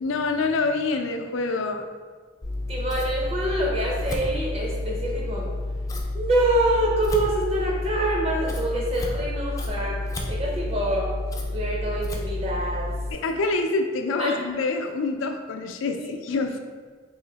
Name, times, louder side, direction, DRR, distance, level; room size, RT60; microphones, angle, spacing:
voice 1, 0.0-1.8 13.1-16.6, left 3 dB, 85° left, 5 dB, 0.4 m, -26 dB
Scissors, 2.4-13.1, left 2 dB, 15° left, 0.4 m, -30 dB
voice 2, 2.7-5.5 6.1-10.0 10.3-11.1 11.5-12.9 14.2-14.4 16.0-16.1, right 1 dB, 30° right, -2 dB, 0.7 m, -26 dB
3.1 x 2.7 x 3.9 m, 1.5 s
head